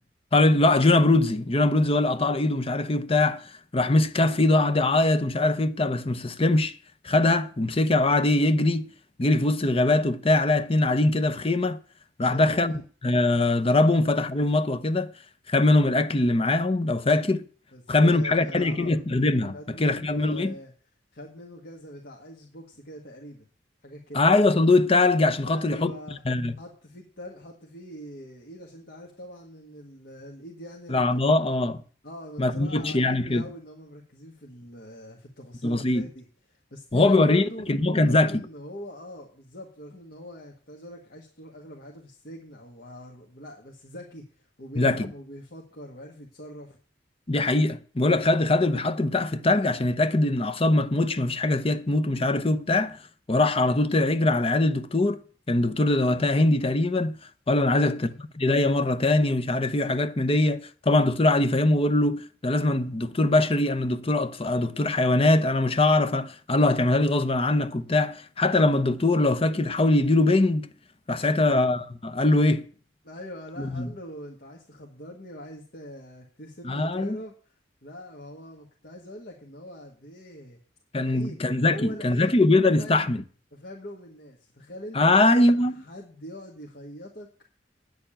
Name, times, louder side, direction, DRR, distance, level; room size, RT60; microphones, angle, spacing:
voice 1, 0.3-3.4 3.7-6.8 7.0-8.9 9.2-11.8 12.2-12.7 13.0-15.1 15.5-17.4 17.9-20.5 24.1-25.9 26.3-26.5 30.9-31.8 32.4-33.4 35.6-36.1 36.9-38.3 44.8-45.1 47.3-53.0 53.3-55.2 55.5-57.2 57.5-58.1 58.4-70.7 71.1-72.7 73.6-73.9 76.6-77.2 80.9-83.2 84.9-85.8, left 2 dB, 30° left, 0.8 m, -22 dB
voice 2, 12.2-12.8 17.7-19.0 19.5-20.7 21.1-23.5 23.8-24.2 25.4-26.2 26.6-31.0 32.0-37.7 38.0-46.8 57.7-58.2 71.2-71.7 73.0-80.6 81.0-82.5 82.8-83.1 83.5-87.3, equal, 55° left, 1.8 m, -43 dB
9.5 x 6.9 x 8.9 m
head